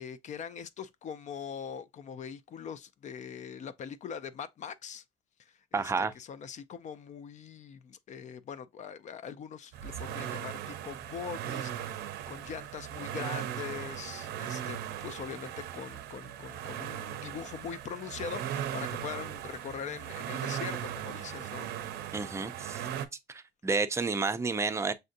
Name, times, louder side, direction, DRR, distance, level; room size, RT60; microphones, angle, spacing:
voice 1, 0.0-5.0 5.4-12.0 12.3-21.7, left 7 dB, 45° left, 0.4 m, -42 dB
voice 2, 5.7-6.1 22.1-22.8 23.3-24.9, right 4 dB, 15° right, 0.4 m, -30 dB
sound 1, 9.7-23.1, right 10 dB, 80° right, 0.6 m, -38 dB
6.5 x 2.6 x 2.5 m
cardioid pair, 110°, 17 cm